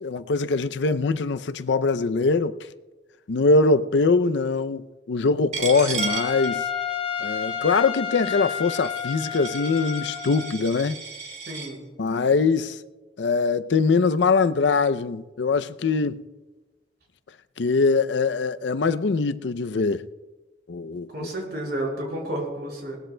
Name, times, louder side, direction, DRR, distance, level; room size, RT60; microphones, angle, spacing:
voice 1, 0.0-2.6 3.3-6.6 7.2-11.0 12.0-12.8 13.2-16.2 17.6-20.1 20.7-21.3, left 4 dB, 85° left, 0.5 m, -22 dB
Coin (dropping), 5.5-11.7, right 6 dB, 45° right, 2.8 m, -35 dB
Trumpet, 6.0-10.6, left 7 dB, 35° left, 2.3 m, -30 dB
voice 2, 11.5-11.8 21.1-23.0, right 1 dB, 65° right, 5.6 m, -31 dB
21.0 x 19.5 x 2.2 m
head